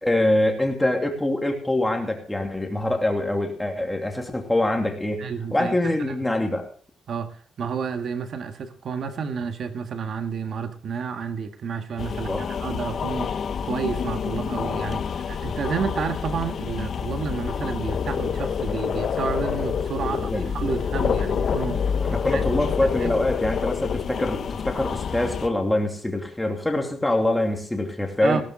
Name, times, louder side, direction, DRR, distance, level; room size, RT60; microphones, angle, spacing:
voice 1, 0.0-5.2 5.5-6.7 12.3-12.4 20.1-20.5 22.0-28.4, left 1 dB, 5° left, 2 dB, 2.7 m, -24 dB
voice 2, 5.2-5.7 6.1-6.2 7.1-13.4 13.6-22.4 23.0-23.2 28.2-28.4, right 6 dB, 50° right, 7 dB, 1.7 m, -30 dB
sound 1, 12.0-25.5, left 7 dB, 45° left, 0.8 m, -27 dB
17.0 x 12.5 x 3.8 m, 0.43 s
cardioid pair, 145°, 0 cm